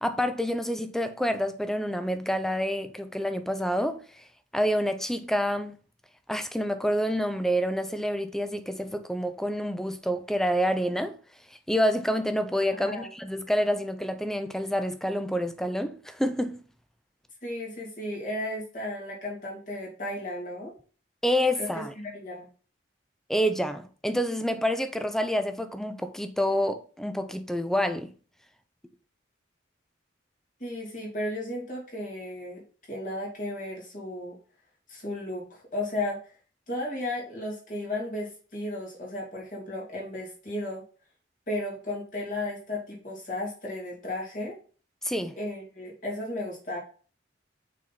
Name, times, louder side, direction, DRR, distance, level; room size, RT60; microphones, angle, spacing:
voice 1, 0.0-4.2 4.5-5.8 6.3-11.2 11.7-16.6 21.2-21.9 23.3-28.1 45.0-45.4, equal, ahead, 0.4 m, -28 dB
voice 2, 12.8-13.1 17.4-20.7 21.6-22.5 30.6-32.6 32.9-34.4 34.9-36.3 36.7-40.8 41.5-44.6 45.4-46.8, left 1 dB, 45° left, 2.7 m, -34 dB
6.1 x 4.2 x 4.2 m
head